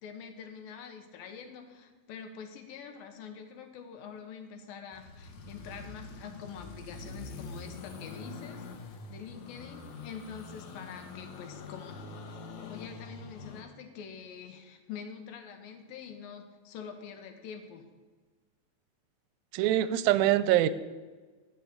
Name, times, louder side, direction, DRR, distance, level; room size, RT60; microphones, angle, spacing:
voice 1, 0.0-12.0 12.6-17.8, left 7 dB, 90° left, 6 dB, 2.9 m, -45 dB
sound 1, 4.9-13.6, left 3 dB, 65° left, 2.3 m, -45 dB
voice 2, 19.5-20.7, right 13 dB, 85° right, 15 dB, 2.4 m, -24 dB
14.0 x 5.5 x 8.3 m, 1.4 s
omnidirectional pair, 4.1 m